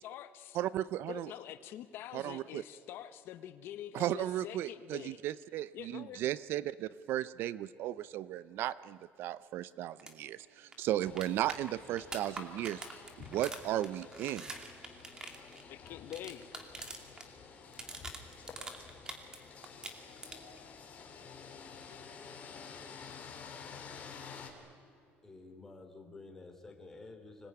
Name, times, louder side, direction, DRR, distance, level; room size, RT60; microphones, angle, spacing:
voice 1, 0.0-0.6 1.0-5.2 5.7-6.2 15.7-16.5, left 11 dB, 60° left, 11 dB, 0.9 m, -46 dB
voice 2, 0.5-1.3 2.1-2.6 3.9-12.8 13.2-14.5, right 13 dB, 60° right, 17 dB, 0.6 m, -35 dB
sound 1, 10.0-10.1 10.4-10.5 10.7-17.3 17.5-19.4 19.6-20.6 22.6-22.7, right 2 dB, 15° right, 2.5 m, -45 dB
sound 2, 11.0-24.5, left 6 dB, 35° left, 3.6 m, -51 dB
voice 3, 25.2-27.5, left 3 dB, 10° left, 2 dB, 3.4 m, -51 dB
26.0 x 20.0 x 9.8 m, 2.5 s
cardioid pair, 155°, 4 cm